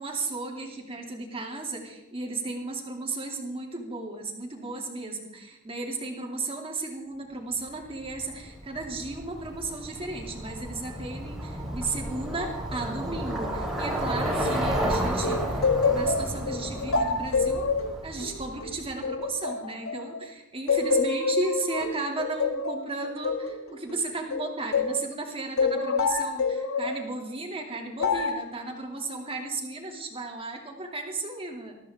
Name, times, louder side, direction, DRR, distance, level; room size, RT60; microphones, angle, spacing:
voice 1, 0.0-17.6 18.0-31.8, right 3 dB, 25° right, 1 dB, 2.7 m, -34 dB
Bicycle, 8.0-18.9, right 1 dB, ahead, 3.4 m, -32 dB
sound 1, 15.2-20.2 20.7-25.0 25.6-27.0 28.0-28.5, left 4 dB, 70° left, 1.3 m, -27 dB
21.0 x 14.0 x 3.7 m, 1.0 s
head